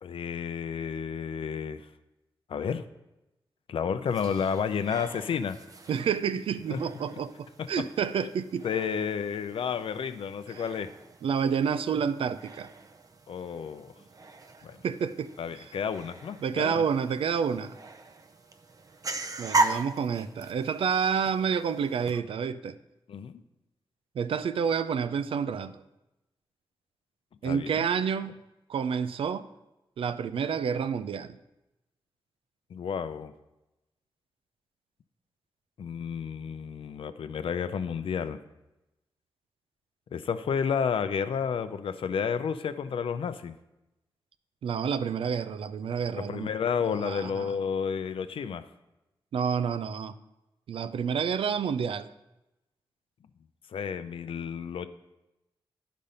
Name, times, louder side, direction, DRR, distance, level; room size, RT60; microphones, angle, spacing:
voice 1, 0.0-1.8 2.5-2.8 3.7-5.6 6.7-6.8 7.6-7.7 8.6-10.9 13.3-13.9 14.6-14.8 15.4-16.8 23.1-23.3 27.4-27.9 32.7-33.3 35.8-38.4 40.1-43.5 46.2-48.6 53.7-54.9, left 7 dB, 80° left, 0.5 m, -31 dB
sound 1, 4.1-22.2, right 2 dB, 40° right, 0.6 m, -38 dB
voice 2, 5.9-8.7 10.5-10.6 11.2-12.7 14.8-15.7 16.4-17.8 19.4-22.8 24.1-25.8 27.4-28.4 28.7-29.5 30.0-31.4 44.6-46.5 46.8-47.5 49.3-50.1 50.7-52.1, right 7 dB, 90° right, 0.4 m, -29 dB
10.5 x 5.2 x 5.4 m
wide cardioid pair, 90°, 9 cm